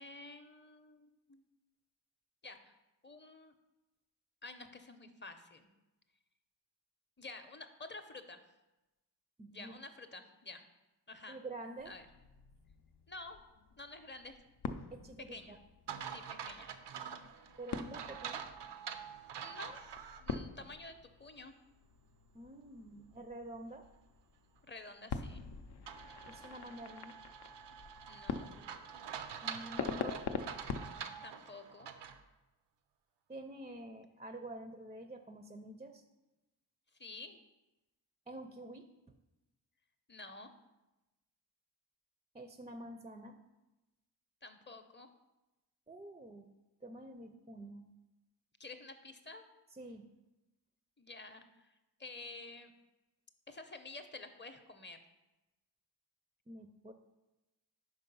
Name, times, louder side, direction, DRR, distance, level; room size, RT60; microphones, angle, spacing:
voice 1, 0.0-1.4 2.4-2.7 3.0-3.5 4.4-5.7 7.2-8.4 9.5-10.6 11.1-11.4 11.9-12.1 13.1-13.4 13.8-14.4 15.3-15.6 16.1-16.7 19.4-19.8 20.2-21.5 24.6-25.4 28.1-28.5 31.2-31.9 37.0-37.4 40.1-40.5 44.4-45.1 48.6-49.5 51.0-51.7 52.0-52.7 53.5-55.0, left 3 dB, 25° left, 7 dB, 0.6 m, -50 dB
voice 2, 9.4-9.8 11.3-11.9 14.9-15.6 17.6-18.4 22.3-23.8 26.3-27.2 29.4-30.2 33.3-36.0 38.3-38.9 42.3-43.4 45.9-46.5 46.8-47.9 49.7-50.1 56.5-56.9, right 1 dB, 15° right, 7 dB, 0.4 m, -48 dB
sound 1, 11.8-30.9, left 6 dB, 70° left, 0.5 m, -46 dB
sound 2, 15.9-20.4 20.8-20.9 25.9-32.2, right 7 dB, 90° right, 0.6 m, -46 dB
5.4 x 4.8 x 5.4 m, 1.0 s
cardioid pair, 65°, 41 cm